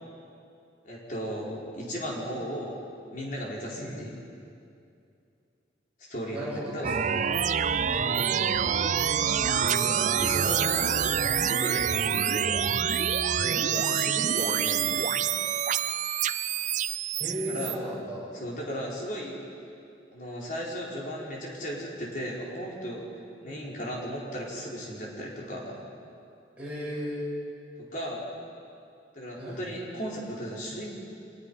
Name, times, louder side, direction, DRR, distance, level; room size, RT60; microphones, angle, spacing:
voice 1, 0.8-2.8 3.1-4.1 6.1-6.9 9.4-11.1 11.5-12.7 13.7-15.1 17.5-17.8 18.4-19.4 20.1-25.8 27.8-28.3 29.1-30.9, equal, 50° left, -4 dB, 4.6 m, -36 dB
voice 2, 6.3-7.3 7.9-8.9 10.7-11.3 13.4-13.7 17.2-18.3 23.4-23.8 26.6-27.3 29.4-29.6, equal, 10° right, -7 dB, 7.5 m, -37 dB
sound 1, 6.8-17.7, right 8 dB, 45° right, 0.5 m, -26 dB
25.5 x 20.5 x 5.7 m, 2.6 s
head